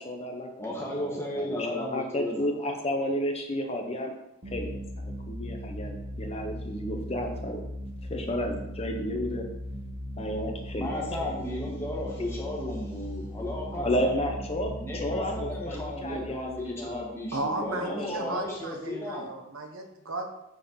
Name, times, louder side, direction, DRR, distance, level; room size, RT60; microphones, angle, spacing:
voice 1, 0.0-4.1 4.5-7.6 8.1-9.5 10.2-11.1 11.4-11.5 13.7-17.1 17.8-18.4, equal, 30° left, 3 dB, 0.8 m, -32 dB
voice 2, 0.6-2.5 10.7-14.1 14.8-19.3, left 1 dB, 10° left, -4 dB, 1.9 m, -34 dB
sound 1, 4.4-17.7, equal, 40° right, 1.1 m, -38 dB
voice 3, 17.3-20.3, right 2 dB, 75° right, 3 dB, 1.3 m, -34 dB
8.8 x 4.4 x 5.6 m, 0.88 s
head